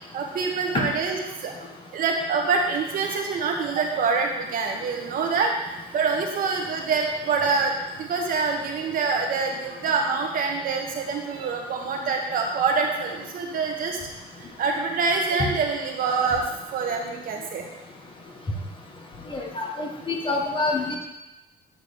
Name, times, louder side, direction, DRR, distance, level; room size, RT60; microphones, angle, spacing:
voice 1, 0.1-1.5 1.9-14.0 14.4-16.4 16.7-17.7, right 4 dB, 55° right, 2 dB, 1.4 m, -26 dB
voice 2, 19.3-21.0, left 3 dB, 30° left, 0 dB, 1.5 m, -27 dB
8.6 x 3.3 x 6.5 m, 1.0 s
cardioid pair, 110°, 17 cm